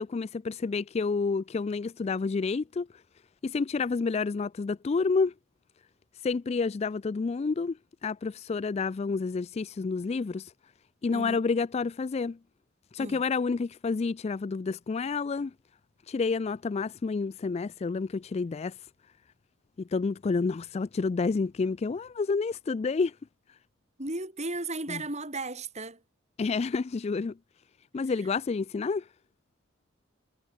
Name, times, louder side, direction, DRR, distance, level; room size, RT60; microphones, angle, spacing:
voice 1, 0.0-2.9 3.4-5.3 6.2-7.8 8.0-10.5 11.0-12.4 12.9-15.5 16.1-18.8 19.8-23.2 24.9-25.0 26.4-27.4 27.9-29.1, left 4 dB, 30° left, 0.3 m, -29 dB
voice 2, 11.1-11.4 13.0-13.2 24.0-26.0 28.1-28.2, right 2 dB, 35° right, 6.7 m, -35 dB
head